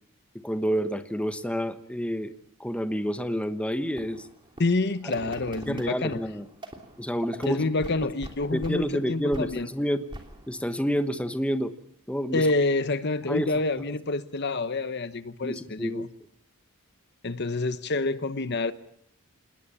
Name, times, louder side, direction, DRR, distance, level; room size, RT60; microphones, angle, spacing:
voice 1, 0.3-2.3 2.6-4.3 5.0-5.2 5.7-6.5 7.0-7.7 8.5-10.0 10.5-11.7 12.1-12.5 13.3-13.5 13.9-14.0 15.4-16.0, equal, 5° left, 9 dB, 1.1 m, -29 dB
sound 1, 4.0-9.0 9.3-10.6, right 1 dB, 20° right, 3.0 m, -43 dB
voice 2, 4.6-6.2 7.5-9.7 12.3-16.1 17.2-18.7, left 3 dB, 50° left, 13 dB, 0.9 m, -27 dB
27.0 x 20.0 x 7.2 m, 0.67 s
head